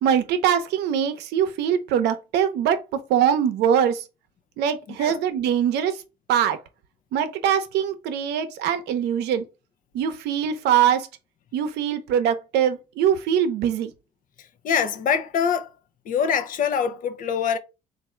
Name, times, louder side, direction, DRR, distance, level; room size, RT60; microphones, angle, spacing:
voice 1, 0.0-2.8 3.1-4.0 4.6-6.0 6.3-6.6 7.1-9.4 9.9-11.1 11.5-13.9, right 9 dB, 85° right, 0.7 m, -22 dB
voice 2, 14.4-15.7 16.1-17.6, left 7 dB, 55° left, 0.6 m, -24 dB
3.6 x 2.6 x 4.3 m
cardioid pair, 110°, 17 cm